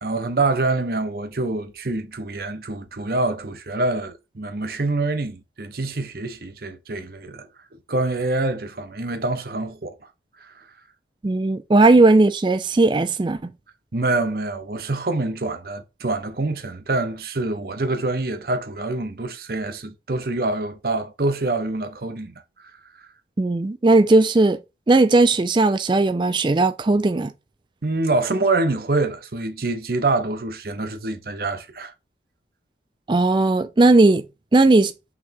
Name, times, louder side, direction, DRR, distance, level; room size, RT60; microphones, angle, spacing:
voice 1, 0.0-7.5 7.9-10.0 10.4-10.6 13.9-22.3 27.8-31.9, right 2 dB, 55° right, 0.8 m, -25 dB
voice 2, 11.2-13.4 23.4-24.6 24.9-27.3 33.1-34.2 34.5-34.9, right 2 dB, 25° right, 0.4 m, -17 dB
5.8 x 3.3 x 2.7 m
head